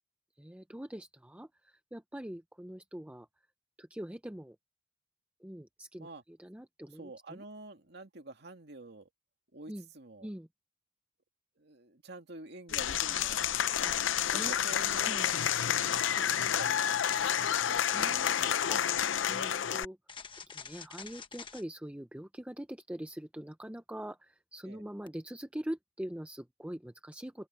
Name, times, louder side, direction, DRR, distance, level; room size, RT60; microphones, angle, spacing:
voice 1, 0.4-3.3 3.8-4.6 5.4-7.4 9.7-9.9 10.2-10.5 13.8-14.0 14.3-14.6 15.0-15.3 17.4-17.5 17.9-18.8 19.3-20.0 20.4-27.5, right 1 dB, 5° right, 0.6 m, -43 dB
voice 2, 6.9-9.1 9.5-10.3 11.6-14.0 14.3-15.3 16.1-18.6 24.7-24.8, right 2 dB, 55° right, 2.3 m, -48 dB
Applause / Crowd, 12.7-19.8, left 9 dB, 75° left, 0.6 m, -29 dB
sound 1, 14.9-16.1 16.6-18.9 20.1-21.6 25.1-25.2, left 6 dB, 25° left, 1.2 m, -49 dB
open air
head